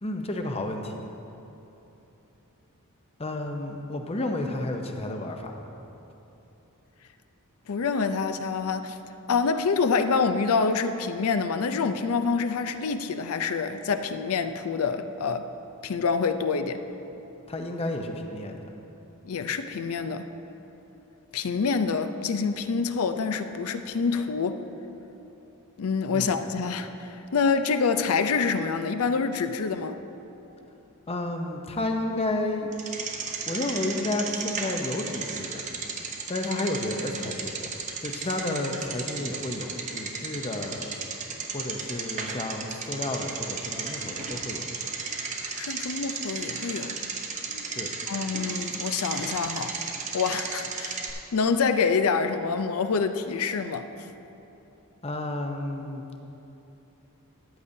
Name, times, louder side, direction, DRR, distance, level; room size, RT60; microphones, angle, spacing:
voice 1, 0.0-1.0 3.2-5.5 17.5-18.6 26.1-26.3 31.1-32.7 33.2-35.6 36.3-37.5 38.0-40.9 41.5-44.6 47.7-47.9 55.0-56.0, left 2 dB, 25° left, 4 dB, 0.7 m, -31 dB
voice 2, 7.7-9.0 9.3-15.5 15.8-16.8 19.2-20.3 21.3-24.6 25.8-30.0 45.6-47.0 47.5-47.7 48.1-49.7 50.1-51.0 51.3-53.9, left 5 dB, 70° left, 9 dB, 0.5 m, -26 dB
Bicycle, 32.7-51.1, right 5 dB, 35° right, 0.8 m, -34 dB
13.5 x 10.0 x 2.7 m, 3.0 s
head